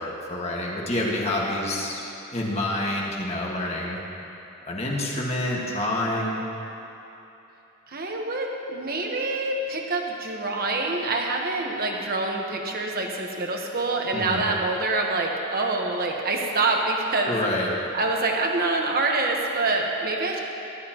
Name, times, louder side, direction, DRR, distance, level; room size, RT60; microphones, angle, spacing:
voice 1, 0.0-2.0 2.3-4.0 4.7-6.4 14.1-14.4 17.3-17.8, left 1 dB, 30° left, -3 dB, 1.7 m, -27 dB
voice 2, 7.9-17.4 17.9-20.4, right 3 dB, 45° right, 0 dB, 1.3 m, -26 dB
19.5 x 12.5 x 3.0 m, 3.0 s
head